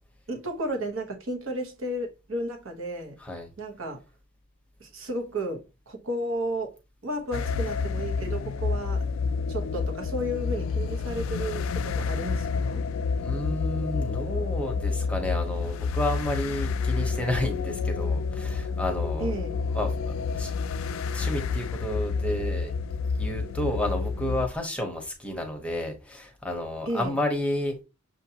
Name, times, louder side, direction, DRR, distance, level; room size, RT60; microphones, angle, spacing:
voice 1, 0.3-3.2 3.6-4.0 4.8-6.8 7.0-9.1 9.5-12.8 19.2-19.6 26.9-27.2, right 1 dB, 65° right, 1.1 m, -33 dB
voice 2, 3.2-3.5 13.2-19.3 19.7-20.5 21.1-22.7 23.1-27.8, left 1 dB, 5° left, 0.8 m, -31 dB
sound 1, 7.3-24.5, left 5 dB, 70° left, 0.3 m, -29 dB
6.5 x 2.5 x 2.8 m
head